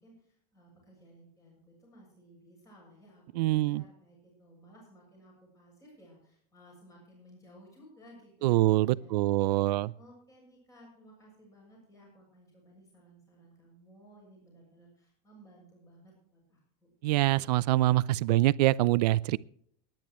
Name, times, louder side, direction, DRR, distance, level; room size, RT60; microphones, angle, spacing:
voice 1, 0.0-16.9, right 1 dB, 15° left, 7.1 m, -57 dB
voice 2, 3.4-3.8 8.4-9.9 17.0-19.4, right 16 dB, 75° right, 0.6 m, -25 dB
24.5 x 10.5 x 3.1 m
supercardioid pair, 155°, 21 cm